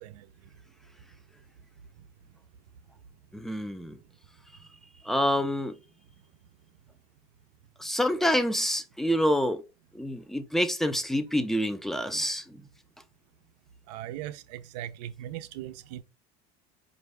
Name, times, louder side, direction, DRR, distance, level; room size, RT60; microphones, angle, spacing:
voice 1, 3.3-4.0 5.0-5.8 7.8-9.6 9.9-12.6, equal, ahead, 0.6 m, -27 dB
voice 2, 13.9-14.3 14.7-16.0, right 12 dB, 80° right, 0.6 m, -38 dB
4.6 x 2.6 x 3.3 m
supercardioid pair, 95°, 21 cm